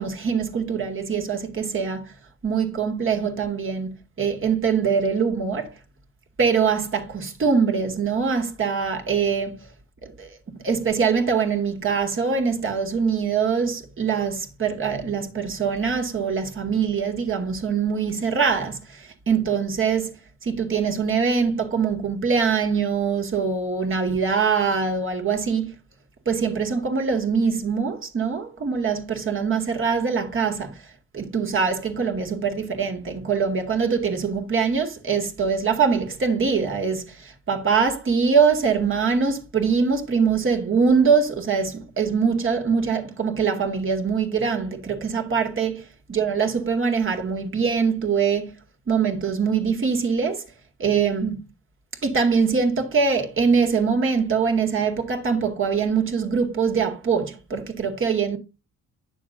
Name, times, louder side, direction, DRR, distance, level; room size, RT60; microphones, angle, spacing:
voice 1, 0.0-2.1 2.4-5.7 6.4-9.6 10.0-20.1 20.4-25.8 26.3-30.8 31.1-45.8 46.1-48.6 48.9-50.4 50.8-51.5 52.0-58.4, right 5 dB, 45° right, 2.2 m, -23 dB
10.0 x 6.6 x 2.6 m
cardioid pair, 90°, 30 cm